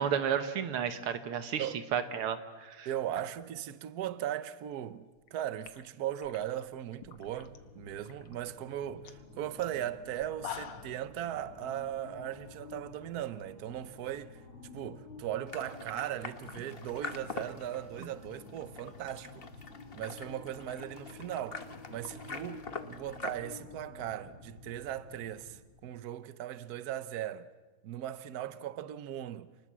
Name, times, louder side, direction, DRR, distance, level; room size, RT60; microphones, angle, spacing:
voice 1, 0.0-2.9, right 8 dB, 85° right, 2.2 m, -32 dB
voice 2, 2.8-5.0 5.3-14.4 14.7-19.5 19.9-27.5 27.8-29.5, right 11 dB, 55° right, 1.2 m, -38 dB
sound 1, 5.2-5.3 5.6-7.6 7.9-8.4 8.7-8.8 9.0-9.2 9.6-9.7 10.2-11.0, left 9 dB, 85° left, 2.1 m, -45 dB
sound 2, 7.2-25.6, left 3 dB, 65° left, 3.7 m, -51 dB
sound 3, 15.5-23.3, left 5 dB, 35° left, 1.0 m, -44 dB
29.0 x 20.0 x 7.5 m
omnidirectional pair, 2.4 m